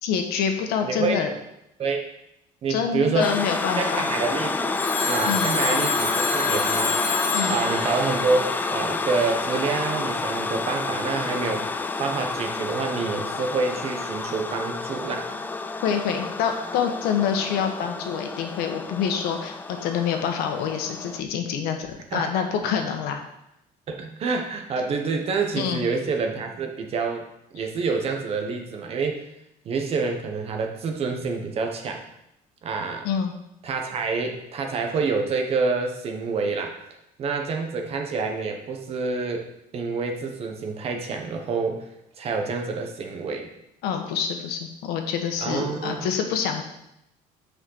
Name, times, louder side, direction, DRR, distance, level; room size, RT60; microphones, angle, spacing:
voice 1, 0.0-1.3 2.7-4.1 5.2-5.5 7.3-7.6 15.8-23.2 25.5-25.8 33.0-33.3 43.8-46.6, left 7 dB, 80° left, 5 dB, 1.3 m, -26 dB
voice 2, 0.8-1.2 1.8-2.0 2.6-3.3 3.8-4.8 5.0-7.2 7.5-11.6 12.0-15.3 22.1-22.5 23.9-27.3 27.5-29.2 29.6-32.0 32.6-33.1 33.6-36.8 37.2-39.5 39.7-41.8 42.2-43.5 45.4-46.1, right 4 dB, 40° right, 4 dB, 1.2 m, -27 dB
sound 1, 3.2-21.2, left 3 dB, 10° left, 0.3 m, -29 dB
Telephone, 4.8-9.0, left 3 dB, 50° left, 3.4 m, -28 dB
6.5 x 5.1 x 6.5 m, 0.82 s
cardioid pair, 160°, 16 cm